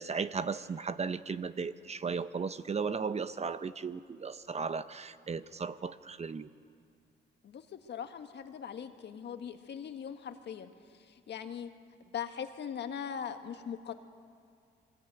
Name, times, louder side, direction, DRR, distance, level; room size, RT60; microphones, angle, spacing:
voice 1, 0.0-6.5, right 5 dB, 35° right, 13 dB, 0.8 m, -36 dB
voice 2, 7.4-10.7 11.0-11.7 12.1-13.9, left 8 dB, 60° left, 7 dB, 1.7 m, -40 dB
23.5 x 19.0 x 9.1 m, 2.3 s
cardioid pair, 90°, 20 cm